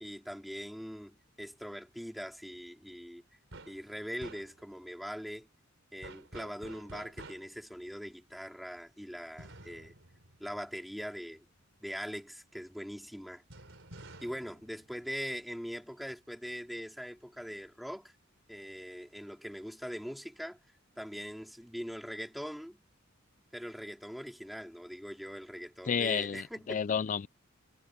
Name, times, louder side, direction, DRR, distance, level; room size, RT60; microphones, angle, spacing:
voice 1, 0.0-3.4 3.7-5.5 5.9-9.9 10.4-11.4 11.8-13.4 14.2-18.1 18.5-20.6 21.0-22.8 23.5-26.8, equal, ahead, 4.1 m, -42 dB
sound 1, 3.5-3.9 4.2-4.8 6.0-7.7 9.4-11.2 13.5-15.6, right 2 dB, 70° right, 4.5 m, -51 dB
voice 2, 25.9-27.3, left 7 dB, 40° left, 0.4 m, -31 dB
head